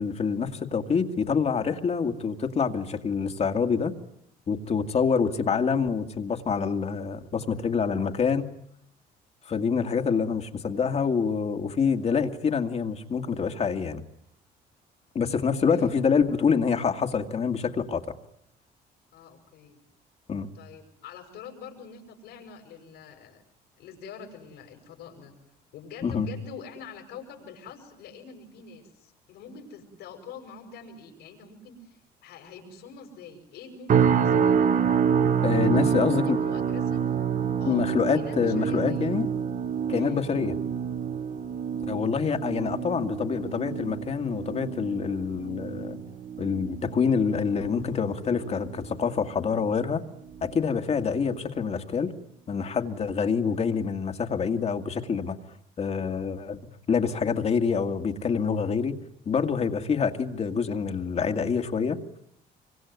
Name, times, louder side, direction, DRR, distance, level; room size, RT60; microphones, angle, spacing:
voice 1, 0.0-3.9 4.5-8.5 9.5-14.0 15.1-18.0 20.3-20.5 26.0-26.3 35.4-36.4 37.7-39.3 39.9-40.5 41.9-46.0 46.4-50.0 50.4-52.1 52.5-55.4 55.8-59.0 59.3-62.0, left 6 dB, 40° left, 2.1 m, -26 dB
voice 2, 15.6-16.0 19.1-19.8 20.5-23.4 23.8-25.4 25.7-34.5 35.5-37.1 37.6-39.2 39.9-40.2, left 6 dB, 85° left, 6.4 m, -45 dB
sound 1, 33.9-49.1 49.4-49.8 50.3-50.5, right 7 dB, 50° right, 1.1 m, -27 dB
25.5 x 24.5 x 9.6 m
cardioid pair, 110°, 17 cm